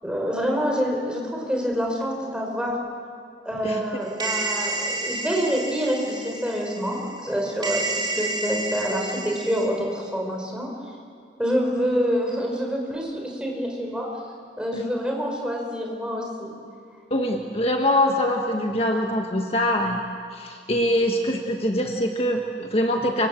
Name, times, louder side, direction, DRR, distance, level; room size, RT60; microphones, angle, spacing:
voice 1, 0.0-2.8 3.4-10.7 11.4-14.1 14.6-16.5, equal, 5° right, 0 dB, 5.1 m, -26 dB
sound 1, 4.2-7.3 7.6-9.7, right 2 dB, 25° right, 4.0 m, -30 dB
voice 2, 17.1-20.0 20.3-23.3, left 1 dB, 35° left, 2 dB, 1.5 m, -23 dB
27.0 x 25.0 x 7.7 m, 2.2 s
head